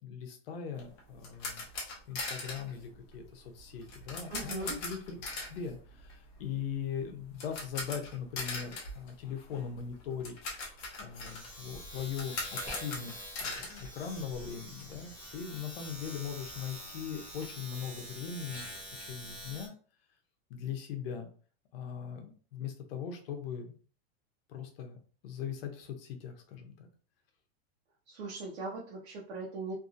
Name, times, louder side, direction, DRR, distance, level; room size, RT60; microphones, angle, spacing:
voice 1, 0.0-1.7 2.1-5.0 5.5-10.4 11.0-19.7 20.5-21.3 21.7-23.7 24.5-25.0 25.2-26.9, left 7 dB, 65° left, 5 dB, 0.8 m, -40 dB
sound 1, 0.8-14.7 15.0-15.1 15.5-15.6 15.9-17.4, left 3 dB, 30° left, 0.7 m, -42 dB
voice 2, 4.3-4.8 28.1-29.7, right 3 dB, 85° right, -3 dB, 0.9 m, -39 dB
Domestic sounds home sounds, 8.9-19.7, equal, 5° right, 0.4 m, -46 dB
2.7 x 2.6 x 2.5 m, 0.42 s
supercardioid pair, 175°, 31 cm